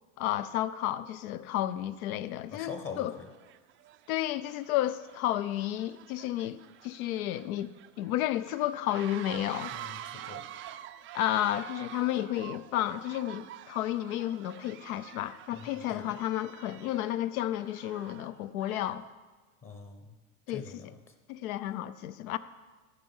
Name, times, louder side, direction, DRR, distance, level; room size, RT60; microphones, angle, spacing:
voice 1, 0.2-3.2 4.1-9.7 11.1-19.1 20.5-20.9 21.3-22.4, left 13 dB, 70° left, 0.7 m, -32 dB
sound 1, 1.7-1.8 2.6-2.8 3.1-19.1, right 12 dB, 30° right, 0.4 m, -48 dB
voice 2, 2.5-3.3 9.7-10.5 15.5-16.2 19.6-20.2 20.5-20.9, left 5 dB, 30° left, 1.2 m, -43 dB
14.0 x 5.6 x 5.5 m
hypercardioid pair, 95°, 44 cm